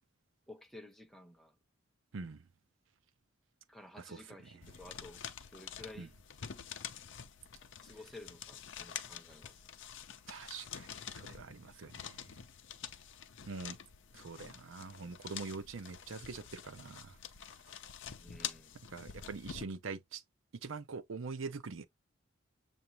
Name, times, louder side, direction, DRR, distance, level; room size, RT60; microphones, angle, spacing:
voice 1, 0.5-1.5 3.7-5.2 5.5-6.1 7.8-9.6 18.2-18.8, left 1 dB, ahead, 0.7 m, -53 dB
voice 2, 2.1-2.4 4.0-4.7 6.0-6.1 10.3-10.9 11.1-12.4 13.5-13.8 14.1-17.2 18.9-20.2 20.6-21.8, right 4 dB, 65° right, 0.6 m, -44 dB
sound 1, 4.6-19.6, left 8 dB, 60° left, 0.6 m, -47 dB
6.9 x 2.5 x 2.9 m
head